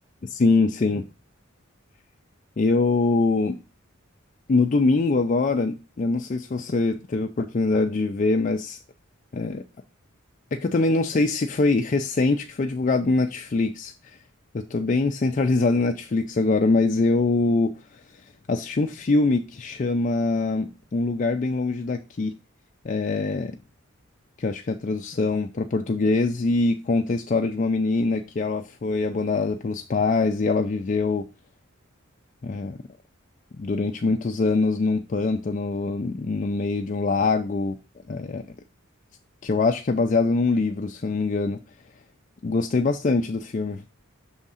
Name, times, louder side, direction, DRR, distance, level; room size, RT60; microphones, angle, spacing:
voice 1, 0.2-1.0 2.6-3.6 4.5-8.8 9.3-9.6 10.5-14.2 14.5-17.7 18.5-22.3 22.8-23.5 24.4-31.3 32.4-32.8 33.6-37.8 38.1-38.4 39.4-41.6 42.4-44.0, left 3 dB, 35° left, 0.4 m, -23 dB
6.3 x 3.6 x 5.5 m
head